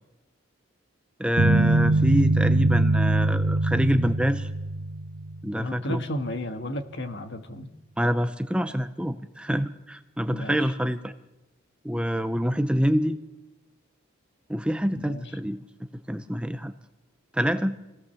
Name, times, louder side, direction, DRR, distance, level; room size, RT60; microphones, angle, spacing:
voice 1, 1.2-4.5 5.4-6.0 8.0-11.1 11.8-13.2 14.5-15.6 16.1-16.7 17.3-17.8, equal, 5° right, 10 dB, 0.6 m, -26 dB
sound 1, 1.4-5.6, right 2 dB, 55° right, 0.8 m, -23 dB
voice 2, 5.6-7.7 10.2-10.6 14.9-15.2, left 1 dB, 55° left, 8 dB, 1.6 m, -33 dB
25.0 x 17.0 x 7.0 m, 1.0 s
head